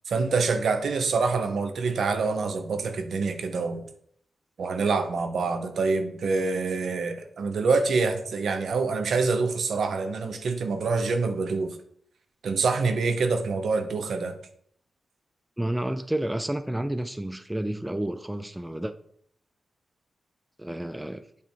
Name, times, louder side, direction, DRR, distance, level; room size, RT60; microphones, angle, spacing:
voice 1, 0.1-3.9 4.6-11.8 12.4-14.4, right 4 dB, 70° right, 0.8 m, -26 dB
voice 2, 15.6-18.9 20.6-21.2, right 1 dB, 10° right, 0.3 m, -30 dB
8.3 x 3.4 x 4.4 m
wide cardioid pair, 105°, 0 cm